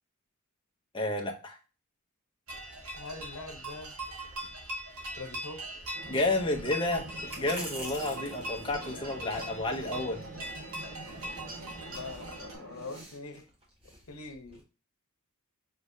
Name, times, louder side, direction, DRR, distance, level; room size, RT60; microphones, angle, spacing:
voice 1, 0.9-1.6 6.1-7.0 7.4-10.2, left 2 dB, 25° left, 1 dB, 0.7 m, -30 dB
sound 1, 2.5-12.6, right 1 dB, 85° right, 1.2 m, -41 dB
voice 2, 2.9-4.0 5.1-5.7 11.9-13.5 14.1-14.6, left 3 dB, 80° left, 5 dB, 0.9 m, -43 dB
sound 2, 4.3-14.6, right 1 dB, 25° right, 1.3 m, -49 dB
sound 3, 5.9-13.0, right 2 dB, 65° right, 1.8 m, -46 dB
5.3 x 3.1 x 2.7 m, 0.35 s
head